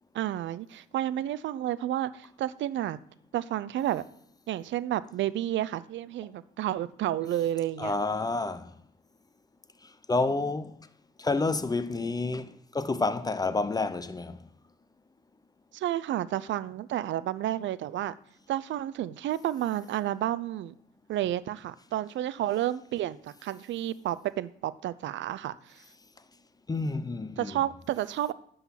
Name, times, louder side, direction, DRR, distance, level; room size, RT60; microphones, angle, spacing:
voice 1, 0.1-3.0 3.3-4.0 4.5-7.9 15.7-18.1 18.5-20.7 21.1-25.8 27.4-28.3, right 12 dB, 70° right, 0.5 m, -31 dB
voice 2, 7.8-8.7 10.1-10.8 11.2-14.4 26.7-27.6, left 3 dB, 20° left, 0.6 m, -29 dB
11.0 x 3.9 x 5.8 m
cardioid pair, 90°, 20 cm